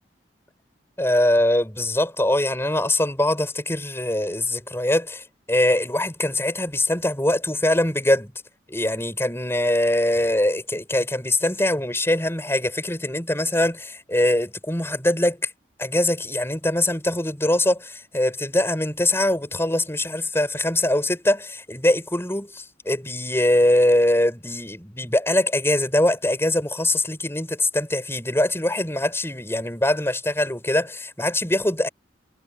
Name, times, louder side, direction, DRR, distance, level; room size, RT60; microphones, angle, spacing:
voice 1, 1.0-8.3 8.7-15.5 15.8-31.9, left 1 dB, 15° left, 5.6 m, -22 dB
head